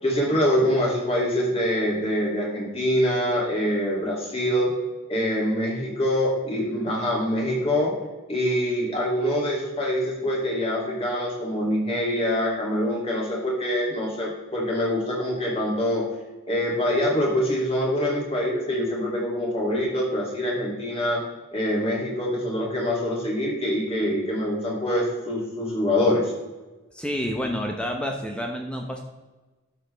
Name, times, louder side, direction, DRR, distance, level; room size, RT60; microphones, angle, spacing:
voice 1, 0.0-4.7 5.1-8.0 8.3-16.1 16.5-21.2 21.5-26.3, equal, 30° left, -4 dB, 2.7 m, -25 dB
voice 2, 26.9-29.0, equal, 5° left, 2 dB, 0.8 m, -29 dB
12.0 x 6.3 x 3.4 m, 1.2 s
head